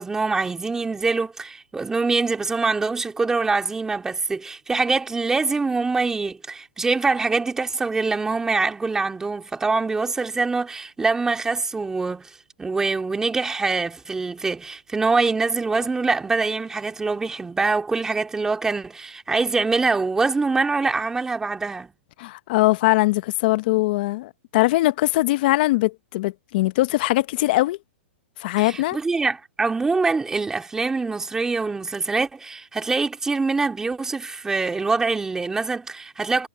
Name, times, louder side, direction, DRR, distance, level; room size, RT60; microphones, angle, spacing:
voice 1, 0.0-12.3 12.6-21.9 28.6-36.5, right 4 dB, 10° right, 2.4 m, -24 dB
voice 2, 22.2-27.8 28.4-29.0, left 19 dB, 45° left, 0.7 m, -21 dB
hypercardioid pair, 145°, 7 cm